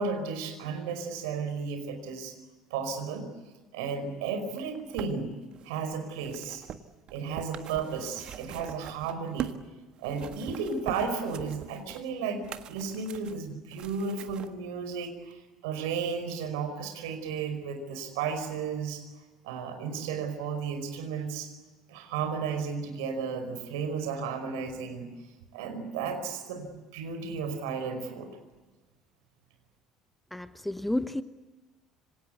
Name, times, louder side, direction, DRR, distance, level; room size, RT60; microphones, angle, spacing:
voice 1, 0.0-2.3 2.7-3.3 3.7-5.3 5.6-6.6 7.1-9.5 10.0-15.4 15.6-19.0 19.4-21.5 21.9-25.1 25.5-26.7 26.9-28.3, right 5 dB, 65° right, 7 dB, 5.1 m, -33 dB
sound 1, 4.5-9.7 10.0-14.5 15.3-15.4, right 9 dB, 45° right, 1.6 m, -42 dB
voice 2, 30.3-31.2, left 1 dB, 5° left, 13 dB, 1.0 m, -31 dB
27.0 x 25.5 x 8.2 m, 1.2 s
figure-of-eight pair, 60°, 2 cm